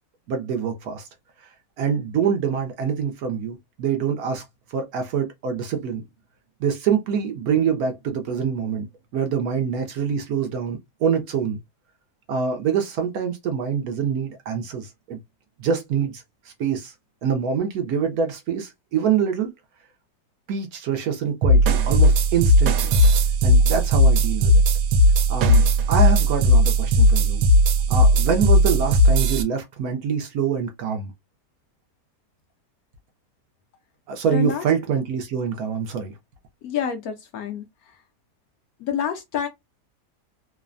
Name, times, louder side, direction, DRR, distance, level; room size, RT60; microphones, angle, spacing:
voice 1, 0.3-1.1 1.4-4.4 4.7-6.0 6.6-8.9 9.1-11.6 12.3-15.2 15.6-16.9 17.2-19.5 20.5-22.9 23.4-24.6 25.3-27.4 27.9-31.1 34.1-36.1, right 7 dB, 70° right, 1.0 m, -25 dB
sound 1, 21.4-29.4, equal, 90° right, 1.2 m, -17 dB
voice 2, 34.3-34.6 36.6-37.9 38.8-39.5, left 7 dB, 70° left, 1.0 m, -28 dB
3.1 x 2.1 x 2.4 m
omnidirectional pair, 1.8 m